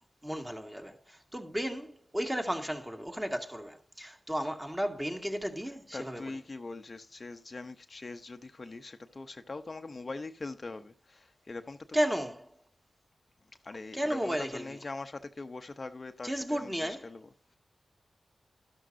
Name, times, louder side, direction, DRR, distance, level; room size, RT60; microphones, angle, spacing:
voice 1, 0.2-6.2 11.9-12.5 13.9-14.8 16.2-17.1, equal, 10° right, 1.9 m, -34 dB
voice 2, 5.9-11.8 13.6-17.3, left 3 dB, 40° left, 0.7 m, -42 dB
12.5 x 12.0 x 2.6 m
wide cardioid pair, 75°, 0 cm